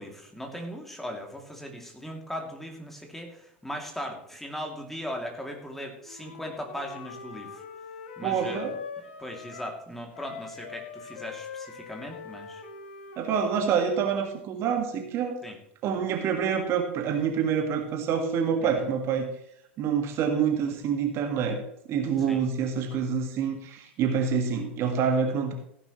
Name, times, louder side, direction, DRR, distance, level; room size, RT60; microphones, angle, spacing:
voice 1, 0.0-7.6 8.2-8.7 9.2-12.6 15.4-15.6 18.6-18.9 22.2-22.4, equal, 5° left, 2 dB, 2.7 m, -38 dB
Wind instrument woodwind instrument, 6.0-9.8 10.1-14.1, left 6 dB, 65° left, 2.0 m, -43 dB
voice 2, 8.2-8.7 13.2-15.4 15.8-19.3 19.8-21.6 21.9-25.5, right 7 dB, 45° right, 5 dB, 1.7 m, -27 dB
16.0 x 10.0 x 3.2 m, 0.72 s
figure-of-eight pair, 80°, 6 cm